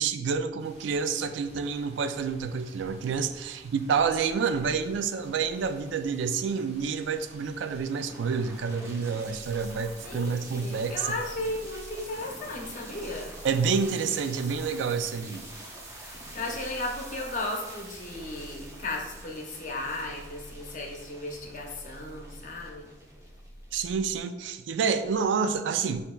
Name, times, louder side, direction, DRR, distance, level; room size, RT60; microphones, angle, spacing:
voice 1, 0.0-11.2 13.4-15.4 23.7-26.0, right 5 dB, 85° right, 10 dB, 0.3 m, -28 dB
sound 1, 0.6-18.5, right 1 dB, 40° right, 1.3 m, -53 dB
sound 2, 7.9-24.0, right 1 dB, 15° right, 0.6 m, -47 dB
voice 2, 10.0-13.3 16.0-22.9, left 2 dB, 45° left, 0 dB, 0.7 m, -35 dB
7.5 x 2.7 x 2.3 m, 1.2 s
head